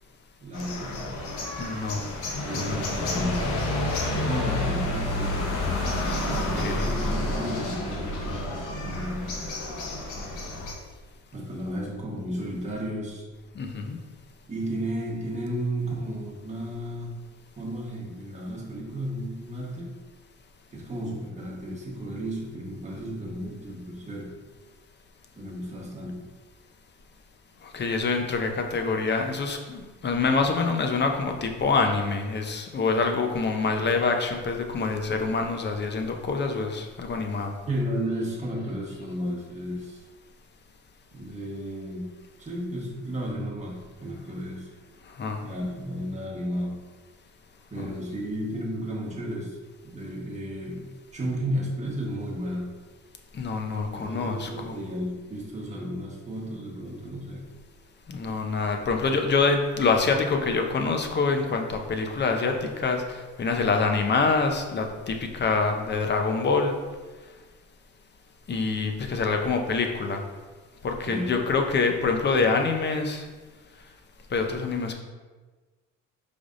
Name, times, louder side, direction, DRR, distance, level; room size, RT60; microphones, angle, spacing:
voice 1, 0.4-1.1 2.4-3.5 4.0-5.9 6.5-9.3 11.3-13.2 14.5-17.1 17.6-19.9 20.7-24.3 25.3-26.2 37.7-40.0 41.1-42.1 42.4-44.7 45.4-46.7 47.7-49.6 49.9-52.7 53.9-57.4 71.1-71.3, equal, 25° right, -3 dB, 1.1 m, -33 dB
sound 1, 0.5-10.7, left 2 dB, 85° left, 0.9 m, -29 dB
voice 2, 1.6-2.1 2.5-2.8 6.3-7.0 13.5-14.0 27.7-37.5 45.2-45.4 47.8-47.9 53.3-54.8 58.1-66.7 68.5-70.2 70.8-73.2 74.3-74.9, left 4 dB, 35° left, 4 dB, 0.6 m, -26 dB
5.0 x 3.4 x 2.5 m, 1.3 s
cardioid pair, 90°, 30 cm